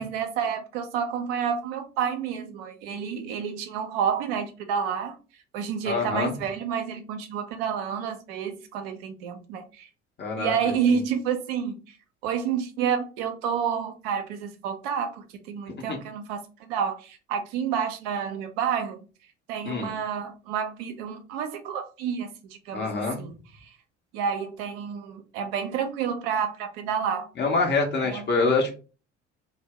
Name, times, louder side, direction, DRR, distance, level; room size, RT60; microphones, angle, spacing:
voice 1, 0.0-5.2 5.5-9.9 10.4-12.0 12.2-16.4 16.7-19.0 19.5-22.3 22.7-22.9 23.2-23.3 23.6-23.7 24.1-27.3 28.0-28.3, right 7 dB, 55° right, 0.6 m, -29 dB
voice 2, 5.8-6.3 10.2-10.6 15.9-16.0 19.7-19.9 22.7-23.2 27.4-28.7, left 3 dB, 30° left, 0.8 m, -25 dB
2.6 x 2.1 x 3.3 m
figure-of-eight pair, 60°, 35 cm